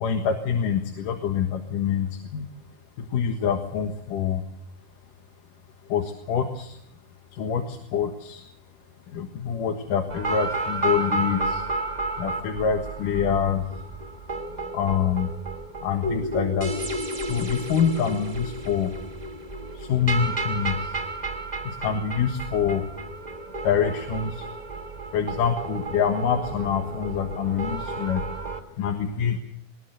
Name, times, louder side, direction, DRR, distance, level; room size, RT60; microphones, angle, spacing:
voice 1, 0.0-2.1 2.3-2.4 3.1-4.4 5.9-6.0 6.3-6.7 7.4-7.6 7.9-8.4 9.1-11.6 12.2-13.6 14.7-15.3 15.8-16.7 17.3-18.9 19.9-20.7 21.8-22.8 23.6-24.3 25.1-28.2 28.8-29.4, left 7 dB, 90° left, 5 dB, 3.2 m, -25 dB
sound 1, 10.1-28.6, right 2 dB, 40° right, 0.5 m, -32 dB
21.5 x 20.0 x 8.1 m, 0.70 s
omnidirectional pair, 3.6 m